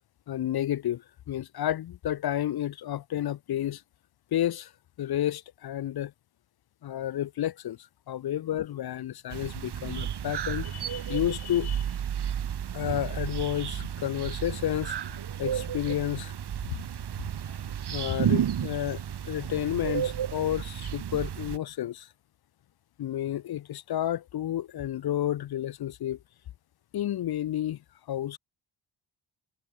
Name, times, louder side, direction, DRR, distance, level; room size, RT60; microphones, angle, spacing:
voice 1, 0.3-3.8 4.3-4.7 5.0-6.1 6.8-7.8 8.1-11.9 12.7-15.0 15.4-16.3 17.9-19.0 19.3-22.1 23.0-26.2 26.9-27.8 28.1-28.4, left 12 dB, 55° left, 0.5 m, -31 dB
sound 1, 9.3-21.6, right 9 dB, 55° right, 1.1 m, -32 dB
cardioid pair, 75°, 47 cm